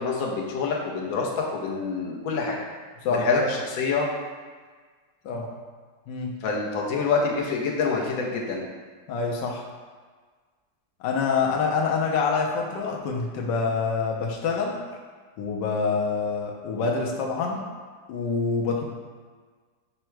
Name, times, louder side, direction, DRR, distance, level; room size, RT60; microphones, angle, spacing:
voice 1, 0.0-2.6 3.1-4.1 6.4-8.7, left 4 dB, 65° left, -1 dB, 1.0 m, -26 dB
voice 2, 9.1-9.6 11.0-14.8 15.4-17.6 18.1-18.8, left 5 dB, 80° left, 0 dB, 1.2 m, -26 dB
5.5 x 2.1 x 4.4 m, 1.5 s
omnidirectional pair, 1.9 m